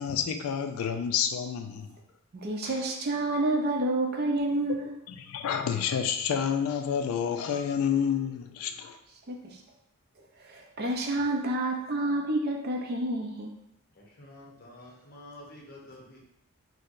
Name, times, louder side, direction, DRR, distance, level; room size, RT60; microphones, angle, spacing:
voice 1, 0.0-1.9 2.6-2.8 5.1-9.0, left 7 dB, 80° left, 9 dB, 0.3 m, -29 dB
voice 2, 2.4-4.9 9.3-9.4 10.5-13.5, right 2 dB, 45° right, 2 dB, 0.5 m, -29 dB
voice 3, 14.0-16.2, left 1 dB, 45° left, -2 dB, 0.7 m, -49 dB
4.3 x 2.1 x 2.5 m, 0.80 s
head